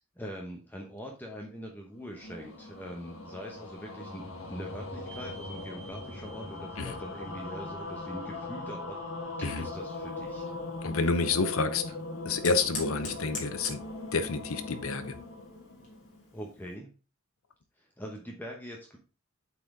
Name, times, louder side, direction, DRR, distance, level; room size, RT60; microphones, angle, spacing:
voice 1, 0.2-9.0 9.4-10.5 16.3-16.9 17.8-19.0, equal, 10° left, 0 dB, 0.9 m, -43 dB
sound 1, 1.9-16.4, left 2 dB, 70° left, 1.6 m, -40 dB
sound 2, 5.0-9.1 9.5-9.6 12.5-12.6, right 1 dB, 15° right, 1.9 m, -53 dB
Fire, 9.5-16.7, left 3 dB, 40° left, 2.7 m, -46 dB
voice 2, 10.8-11.8 12.2-13.8 14.1-15.1, left 4 dB, 90° left, 10 dB, 0.9 m, -29 dB
8.2 x 4.3 x 3.7 m, 0.34 s
head